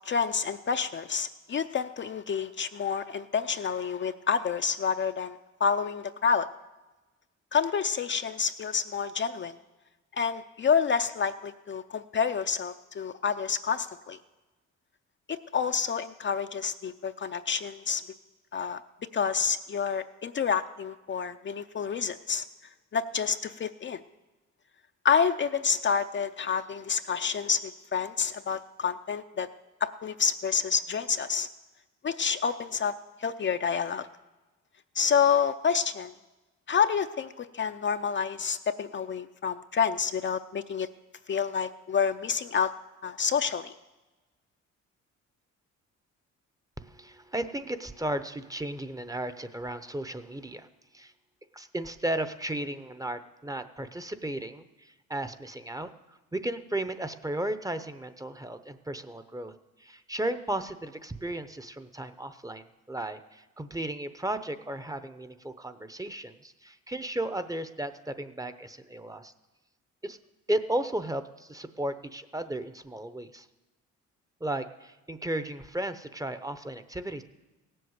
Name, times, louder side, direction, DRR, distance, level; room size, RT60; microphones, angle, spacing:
voice 1, 0.1-6.5 7.5-9.5 10.2-14.2 15.3-18.0 18.5-18.8 19.1-22.4 22.9-24.0 25.0-29.5 29.8-31.5 32.0-32.9 33.2-34.1 35.0-36.1 36.7-40.9 41.3-42.7 43.0-43.7, left 6 dB, 40° left, 8 dB, 0.5 m, -28 dB
voice 2, 46.8-50.7 50.9-51.1 51.5-69.3 70.0-70.2 70.5-73.5 74.4-77.2, right 1 dB, 10° right, 11 dB, 0.8 m, -35 dB
16.5 x 7.8 x 8.0 m, 1.1 s
cardioid pair, 90°, 30 cm